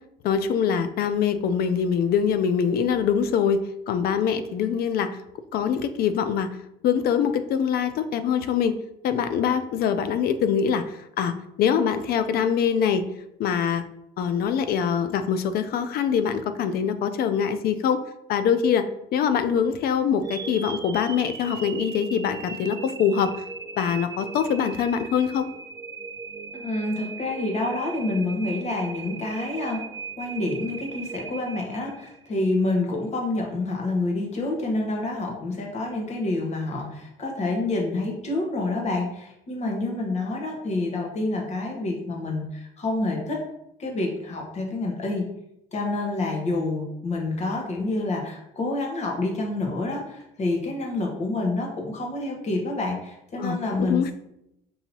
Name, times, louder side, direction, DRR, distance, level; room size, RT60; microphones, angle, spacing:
voice 1, 0.2-3.6 3.9-5.2 5.5-6.6 6.8-8.7 9.0-13.1 13.4-13.8 14.2-18.0 18.3-18.9 19.1-23.4 23.8-25.5 53.4-54.1, left 7 dB, 65° left, 10 dB, 0.4 m, -24 dB
sound 1, 20.2-32.3, right 5 dB, 20° right, 0.3 m, -38 dB
voice 2, 26.5-29.8 30.2-43.4 43.8-45.3 45.7-54.1, left 2 dB, 40° left, 0 dB, 1.1 m, -28 dB
5.4 x 2.7 x 2.9 m, 0.81 s
cardioid pair, 110°, 17 cm